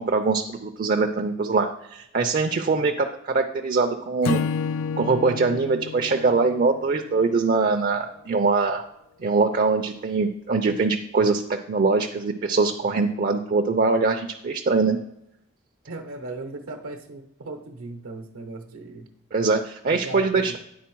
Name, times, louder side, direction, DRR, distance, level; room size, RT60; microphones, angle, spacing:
voice 1, 0.0-4.4 5.0-8.8 9.2-15.0 19.3-20.6, right 4 dB, 40° right, 5 dB, 0.4 m, -23 dB
Acoustic guitar / Strum, 4.2-7.6, left 6 dB, 80° left, 0.3 m, -30 dB
voice 2, 15.9-19.1 19.9-20.6, right 2 dB, 85° right, 4 dB, 0.7 m, -37 dB
9.3 x 3.8 x 4.5 m, 0.84 s
head